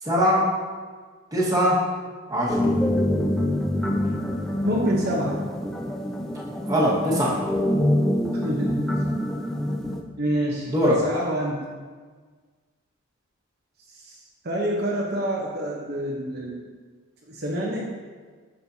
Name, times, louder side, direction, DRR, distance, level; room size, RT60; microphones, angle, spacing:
voice 1, 0.0-0.5 1.3-1.8 2.3-2.6 6.7-7.4 10.7-11.0, equal, 20° right, -6 dB, 1.6 m, -21 dB
sound 1, 2.5-10.0, left 1 dB, ahead, 0.4 m, -25 dB
voice 2, 4.6-5.4 8.4-8.8 10.2-10.7 11.0-11.8 14.0-14.2 14.4-16.6 17.3-17.9, right 1 dB, 50° right, -4 dB, 0.9 m, -27 dB
10.0 x 6.5 x 2.8 m, 1.5 s
head